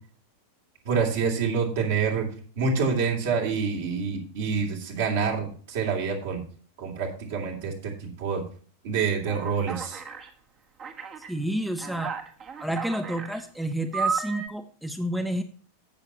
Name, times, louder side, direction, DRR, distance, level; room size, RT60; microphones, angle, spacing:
voice 1, 0.8-2.3 2.6-6.4 6.8-8.4 8.8-10.0, right 5 dB, 55° right, 0 dB, 3.0 m, -27 dB
Alarm, 9.3-10.3 10.8-11.3 11.8-13.4 13.9-14.5, right 5 dB, 30° right, 1.4 m, -33 dB
voice 2, 11.3-12.1 12.6-15.4, right 1 dB, 5° right, 8 dB, 0.9 m, -30 dB
15.5 x 6.7 x 2.9 m, 0.43 s
figure-of-eight pair, 90°, 0 cm